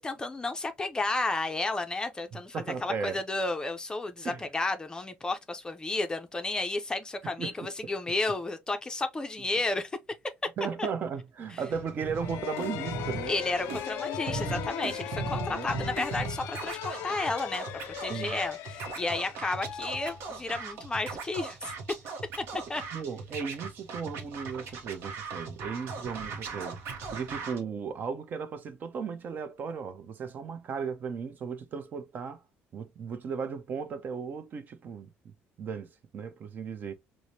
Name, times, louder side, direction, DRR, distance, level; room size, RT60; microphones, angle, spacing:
voice 1, 0.0-2.5 2.8-9.9 10.8-10.9 13.3-21.7 22.5-22.8, left 2 dB, 15° left, 0.5 m, -32 dB
voice 2, 2.3-3.2 4.2-4.4 7.2-7.9 10.6-13.4 13.7-13.8 15.5-15.9 18.1-18.4 22.9-32.4 32.7-36.9, right 6 dB, 45° right, 0.6 m, -36 dB
Scratching (performance technique), 11.7-27.6, right 4 dB, 65° right, 1.0 m, -39 dB
sound 1, 12.1-20.8, left 10 dB, 75° left, 0.3 m, -38 dB
4.7 x 2.1 x 2.7 m
cardioid pair, 120°, 5 cm